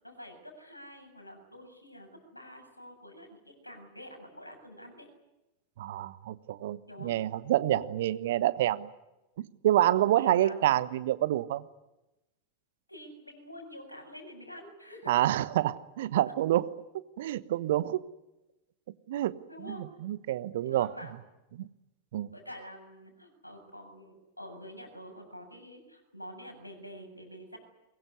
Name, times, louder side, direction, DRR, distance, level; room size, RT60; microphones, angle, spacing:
voice 1, 0.0-5.1 6.9-7.1 7.7-8.0 9.9-10.8 12.9-15.3 16.2-16.3 19.5-20.1 20.6-21.1 22.3-27.6, equal, 85° left, 4 dB, 7.4 m, -47 dB
voice 2, 5.8-8.9 9.6-11.6 15.1-16.7 17.2-18.0 19.1-20.9 21.6-21.7 22.1-22.3, right 13 dB, 55° right, 17 dB, 1.2 m, -28 dB
23.5 x 22.0 x 9.7 m, 0.96 s
figure-of-eight pair, 90°, 0 cm